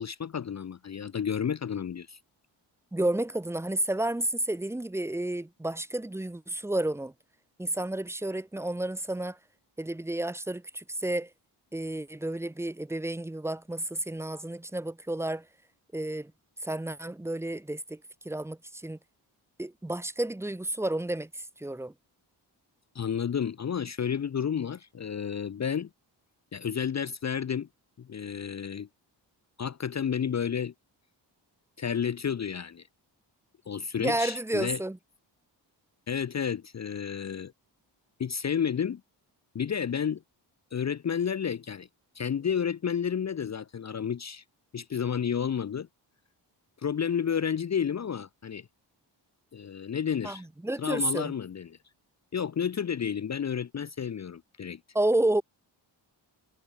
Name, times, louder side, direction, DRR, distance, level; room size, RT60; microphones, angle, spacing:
voice 1, 0.0-2.2 22.9-25.9 26.5-27.7 28.0-28.9 29.6-30.7 31.8-32.8 33.7-34.8 36.1-37.5 38.2-39.0 39.5-40.2 40.7-41.9 42.2-44.4 44.7-45.9 46.8-48.7 49.5-50.5 50.8-51.8 52.3-54.8, left 7 dB, 40° left, 0.7 m, -31 dB
voice 2, 2.9-7.1 7.6-9.4 9.8-11.3 11.7-15.5 15.9-16.3 16.6-19.0 19.6-21.9 34.0-35.0 50.2-51.3 54.9-55.4, right 1 dB, 5° right, 0.7 m, -31 dB
cardioid pair, 85°, 44 cm